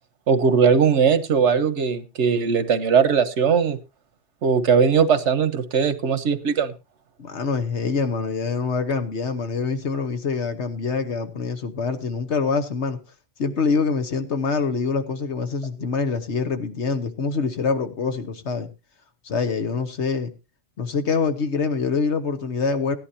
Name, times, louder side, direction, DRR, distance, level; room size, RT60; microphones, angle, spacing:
voice 1, 0.3-3.8 4.4-6.7, right 6 dB, 85° right, 1.3 m, -19 dB
voice 2, 7.2-13.0 13.4-18.7 19.2-20.3 20.8-23.0, left 5 dB, 80° left, 1.5 m, -25 dB
16.5 x 11.0 x 2.8 m
omnidirectional pair, 1.2 m